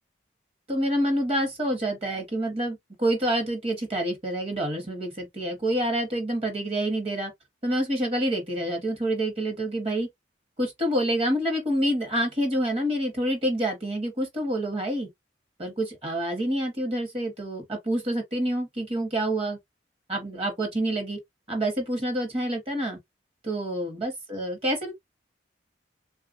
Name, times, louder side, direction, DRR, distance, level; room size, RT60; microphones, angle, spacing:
voice 1, 0.7-7.3 7.6-10.1 10.6-15.1 15.6-19.6 20.1-21.2 21.5-23.0 23.4-24.9, right 1 dB, 30° right, 1.0 m, -27 dB
3.3 x 2.4 x 2.4 m
head